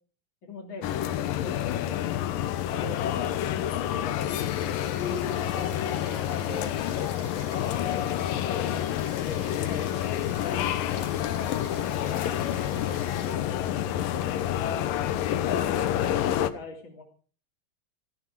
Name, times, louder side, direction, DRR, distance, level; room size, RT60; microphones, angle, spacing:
voice 1, 0.4-2.0 2.6-4.8 5.3-8.1 8.5-10.0 10.3-14.2 15.0-16.2 16.5-17.0, left 2 dB, 30° left, -1 dB, 3.4 m, -43 dB
sound 1, 0.8-16.5, left 11 dB, 70° left, 2.3 m, -28 dB
sound 2, 4.3-13.4, left 3 dB, 50° left, 7.2 m, -46 dB
19.0 x 14.0 x 5.0 m, 0.41 s
omnidirectional pair, 4.9 m